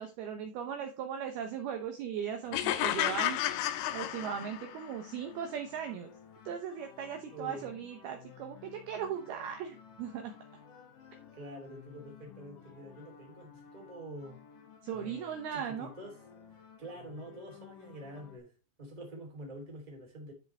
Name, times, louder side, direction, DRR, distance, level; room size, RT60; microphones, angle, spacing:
voice 1, 0.0-3.4 3.9-6.1 6.5-10.3 14.8-15.9, right 8 dB, 85° right, 2.2 m, -38 dB
sound 1, 2.5-4.8, left 12 dB, 85° left, 3.2 m, -32 dB
sound 2, 3.0-18.4, left 7 dB, 55° left, 2.5 m, -55 dB
voice 2, 7.3-7.7 11.3-14.4 14.9-16.2 16.8-18.5 18.8-20.3, right 1 dB, 10° right, 2.1 m, -46 dB
12.5 x 5.4 x 3.4 m
omnidirectional pair, 5.9 m